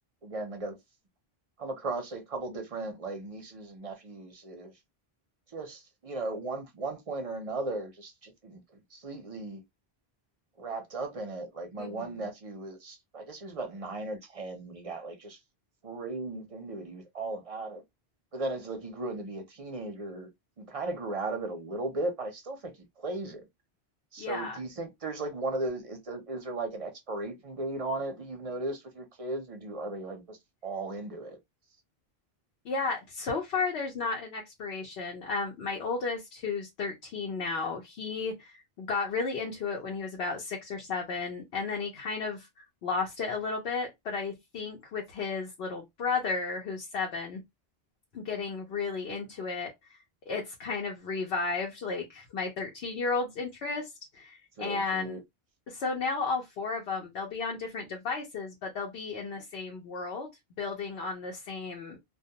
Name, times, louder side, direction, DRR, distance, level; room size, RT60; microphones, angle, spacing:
voice 1, 0.2-0.8 1.6-4.7 5.5-8.6 8.9-9.6 10.6-15.4 15.8-17.8 18.3-20.3 20.6-23.4 24.1-30.4 30.6-31.4 54.6-55.2, right 2 dB, 45° right, 0.5 m, -36 dB
voice 2, 11.8-12.3 24.2-24.6 32.6-42.5 42.8-47.4 48.1-50.0 50.3-53.9 54.1-55.2 55.7-60.3 60.6-62.0, left 4 dB, 80° left, 0.9 m, -33 dB
2.3 x 2.2 x 2.7 m
omnidirectional pair, 1.0 m